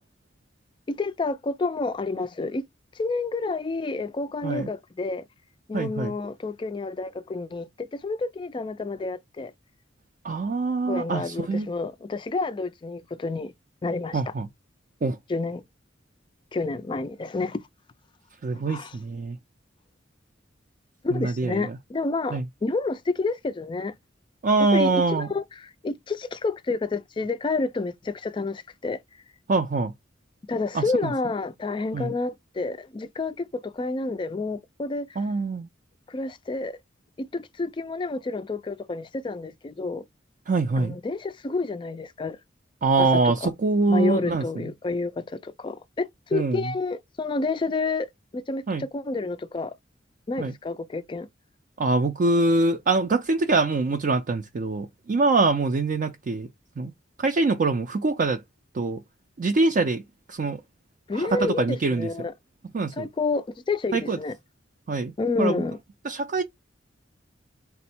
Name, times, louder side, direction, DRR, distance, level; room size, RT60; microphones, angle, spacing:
voice 1, 0.9-2.6 3.0-5.2 5.7-9.5 10.8-13.5 13.8-14.3 15.3-15.6 16.5-17.6 18.7-19.0 21.0-23.9 24.7-29.0 30.5-35.2 36.1-36.8 37.2-40.0 40.8-42.4 43.0-43.5 43.9-48.1 48.3-49.7 50.3-51.3 61.1-62.3 62.9-64.3 65.2-65.8, left 3 dB, 25° left, 0.3 m, -29 dB
voice 2, 5.7-6.1 10.2-11.7 14.1-14.5 15.0-15.2 18.4-19.4 21.1-21.6 22.3-22.4 24.4-25.3 29.5-29.9 30.7-31.1 31.9-32.1 35.2-35.7 40.5-40.9 42.8-44.6 46.3-46.6 48.7-48.8 50.4-50.5 51.8-56.5 56.8-56.9 57.2-58.4 58.7-59.0 59.4-60.0 60.3-60.6 61.1-62.1 62.7-63.1 63.9-64.2 64.9-65.1 65.4-65.6 66.0-66.4, right 3 dB, 45° right, 0.4 m, -24 dB
3.4 x 2.0 x 4.2 m
head